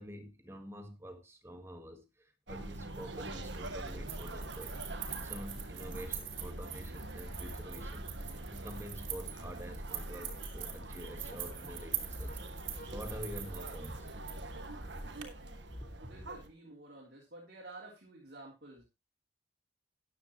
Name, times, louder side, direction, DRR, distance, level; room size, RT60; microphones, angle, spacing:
voice 1, 0.0-14.1 15.8-16.1, equal, 15° right, 1.6 m, -47 dB
sound 1, 2.5-16.5, right 2 dB, 70° right, 1.5 m, -44 dB
sound 2, 3.2-15.2, right 7 dB, 85° right, 2.8 m, -44 dB
sound 3, 9.3-16.8, equal, 55° left, 1.9 m, -60 dB
voice 2, 16.0-18.8, right 2 dB, 50° right, 3.7 m, -51 dB
13.5 x 9.9 x 3.1 m
head